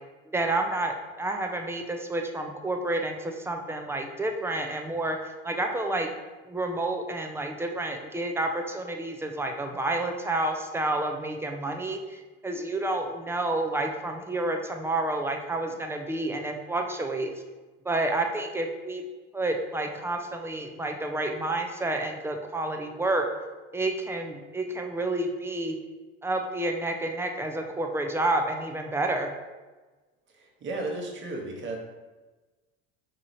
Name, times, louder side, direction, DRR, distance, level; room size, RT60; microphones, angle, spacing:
voice 1, 0.3-6.1 6.4-17.3 17.8-19.0 19.3-23.3 23.7-25.8 26.2-29.3, right 2 dB, 10° right, 3 dB, 0.3 m, -29 dB
voice 2, 30.3-31.8, right 2 dB, 35° right, 0 dB, 0.9 m, -34 dB
4.7 x 2.8 x 2.6 m, 1.2 s
hypercardioid pair, 85°, 33 cm